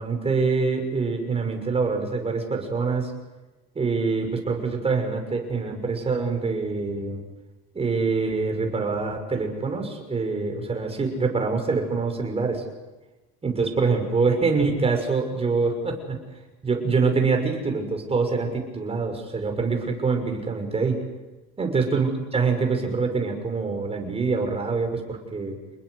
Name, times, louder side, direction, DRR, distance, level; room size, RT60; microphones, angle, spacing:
voice 1, 0.0-3.1 3.7-7.2 7.7-12.6 13.4-16.2 16.6-21.0 21.6-25.6, right 4 dB, 20° right, 3 dB, 6.4 m, -25 dB
29.5 x 20.5 x 8.2 m, 1.1 s
cardioid pair, 145°, 30 cm